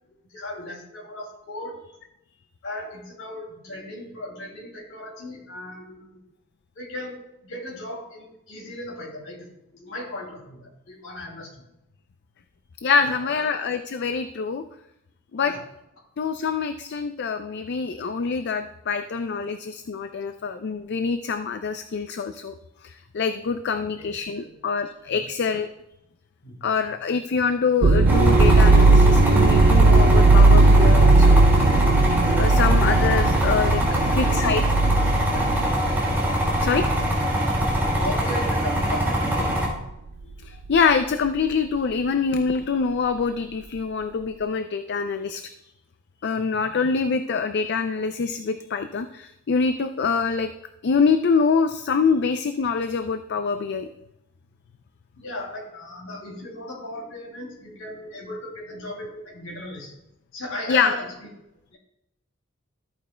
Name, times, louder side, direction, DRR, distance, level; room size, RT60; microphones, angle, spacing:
voice 1, 0.3-1.7 2.6-6.2 6.7-7.2 7.4-11.7 13.2-13.5 15.4-15.6 24.0-24.5 25.1-25.2 26.4-26.7 33.7-35.5 37.8-39.6 46.4-46.7 55.2-59.9 60.3-61.3 61.7-61.8, left 1 dB, 85° left, -2 dB, 2.6 m, -37 dB
voice 2, 12.8-14.6 15.3-15.5 16.2-22.5 22.8-25.7 26.6-31.4 32.3-33.8 34.1-34.6 36.6-36.9 40.4-45.4 46.2-50.5 50.8-53.9 60.7-60.9, left 5 dB, 55° left, 8 dB, 0.4 m, -25 dB
sound 1, 27.8-37.2 37.6-38.0 38.8-39.0, right 3 dB, 50° right, 0.4 m, -17 dB
sound 2, 28.0-39.7, equal, 10° right, 2.5 m, -23 dB
13.0 x 8.6 x 2.2 m, 0.85 s
head